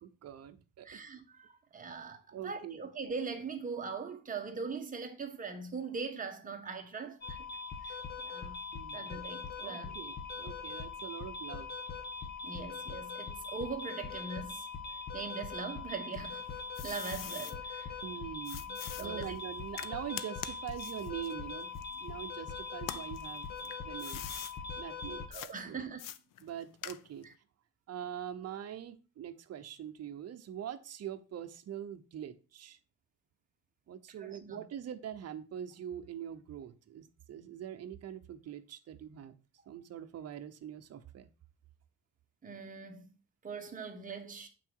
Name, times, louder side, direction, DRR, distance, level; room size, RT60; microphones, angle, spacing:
voice 1, 0.0-1.0 2.3-2.8 8.7-9.1 9.6-11.7 18.0-24.2 24.8-25.3 25.6-25.8 26.4-27.3 27.9-32.8 33.9-39.4 39.7-41.3, right 10 dB, 50° right, 0.9 m, -43 dB
voice 2, 0.8-7.4 7.8-8.0 8.2-8.6 8.9-9.9 10.6-10.7 12.4-14.7 15.1-16.4 16.8-17.9 19.0-19.4 25.3-26.0 27.2-27.3 34.2-34.6 42.4-43.2 43.4-44.5, right 5 dB, 25° right, 1.3 m, -41 dB
sound 1, 7.2-25.3, left 4 dB, 30° left, 1.4 m, -42 dB
sound 2, 16.1-17.6 18.4-22.4 22.8-24.6 25.3-25.5 26.0-27.3, left 11 dB, 80° left, 0.7 m, -44 dB
8.4 x 6.0 x 4.6 m
wide cardioid pair, 180°, 32 cm